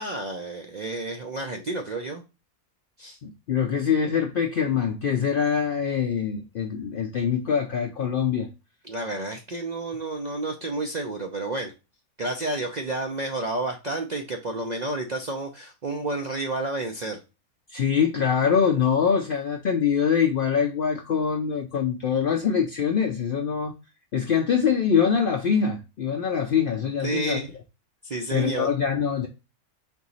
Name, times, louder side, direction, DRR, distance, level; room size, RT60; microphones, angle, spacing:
voice 1, 0.0-2.2 3.0-3.2 8.8-11.7 12.2-17.2 27.0-27.5 28.0-28.7, right 2 dB, 85° right, 0.3 m, -30 dB
voice 2, 3.2-8.5 17.7-23.7 24.1-27.4 28.3-29.3, left 7 dB, 90° left, 0.4 m, -24 dB
4.4 x 3.0 x 3.9 m
omnidirectional pair, 1.6 m